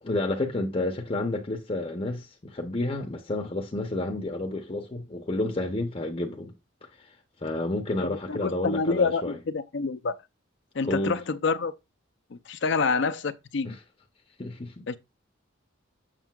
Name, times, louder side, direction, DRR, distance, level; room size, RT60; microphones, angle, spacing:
voice 1, 0.0-6.5 6.9-7.2 7.4-9.4 10.8-11.2 13.6-13.8 14.4-15.0, left 2 dB, 30° left, 0.7 m, -30 dB
voice 2, 8.0-10.2 10.7-11.7 12.3-13.7 14.9-15.0, left 4 dB, 60° left, 0.5 m, -27 dB
7.5 x 6.6 x 2.3 m
head